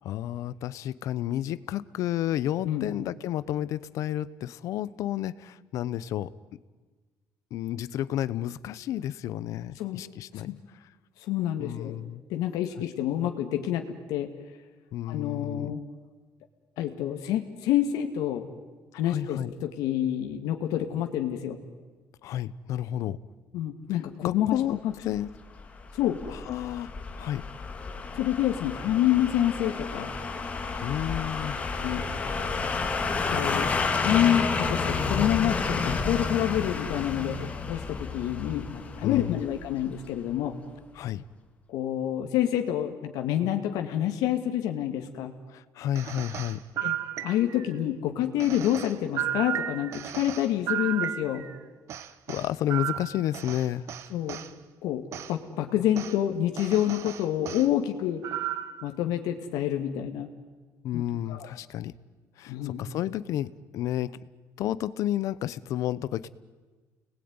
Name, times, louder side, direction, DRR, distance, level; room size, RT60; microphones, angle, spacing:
voice 1, 0.0-6.3 7.5-10.6 11.6-12.2 14.9-15.7 19.1-19.5 22.2-23.2 24.2-25.3 26.3-26.9 27.2-27.4 30.8-31.6 39.0-39.4 41.0-41.2 45.5-46.6 52.3-53.9 60.8-61.9 62.4-64.2 64.6-66.3, left 12 dB, 60° left, 18 dB, 0.9 m, -31 dB
voice 2, 11.3-12.0 12.3-14.3 15.1-15.8 16.8-18.5 18.9-21.6 23.5-24.9 26.0-26.2 28.2-30.1 31.8-32.0 33.3-33.7 34.0-40.6 41.7-45.3 46.8-47.0 47.2-51.4 54.1-54.4 54.8-58.2 58.8-60.3 60.9-61.0 61.3-61.5 62.5-62.8, left 11 dB, 85° left, 4 dB, 2.1 m, -28 dB
sound 1, 25.2-40.1 40.4-40.5, left 4 dB, 20° left, 2.2 m, -31 dB
sound 2, 45.9-47.7 48.4-51.6 51.9-54.5 55.1-55.3 55.9-56.2 56.6-57.7 58.2-58.8, right 11 dB, 50° right, 1.2 m, -34 dB
30.0 x 20.0 x 9.7 m, 1.4 s
cardioid pair, 170°, 6 cm